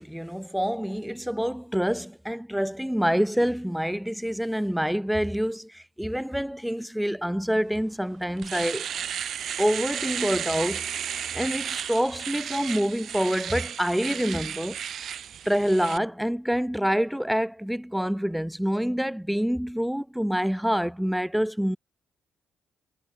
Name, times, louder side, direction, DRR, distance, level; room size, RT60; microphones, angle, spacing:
voice 1, 0.0-8.9 9.6-11.0 11.3-14.8 15.5-21.8, equal, ahead, 0.5 m, -26 dB
Domestic sounds home sounds, 7.8-7.9 8.2-16.0, right 9 dB, 60° right, 1.0 m, -33 dB
cardioid pair, 90°, 0 cm